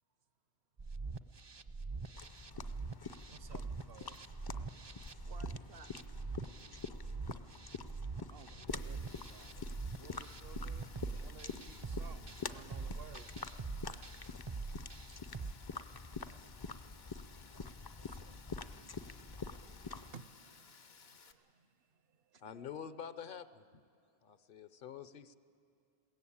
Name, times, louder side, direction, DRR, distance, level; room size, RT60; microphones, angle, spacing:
sound 1, 0.8-15.5, right 4 dB, 35° right, 0.5 m, -44 dB
sound 2, 2.2-20.2, left 4 dB, 35° left, 0.4 m, -47 dB
voice 1, 3.3-4.2 7.3-7.5 8.3-13.4 18.0-18.4 18.8-18.9 19.2-19.5 19.8-21.7, right 7 dB, 70° right, 0.9 m, -57 dB
voice 2, 4.9-5.9 8.9-9.0 10.5-11.2 11.9-12.2 12.5-12.7 22.2-22.5, right 4 dB, 85° right, 1.3 m, -62 dB
Rain, 8.7-21.3, left 5 dB, 75° left, 1.2 m, -60 dB
voice 3, 22.4-23.6 24.2-25.4, left 8 dB, 60° left, 0.8 m, -47 dB
21.0 x 17.0 x 8.7 m
omnidirectional pair, 1.0 m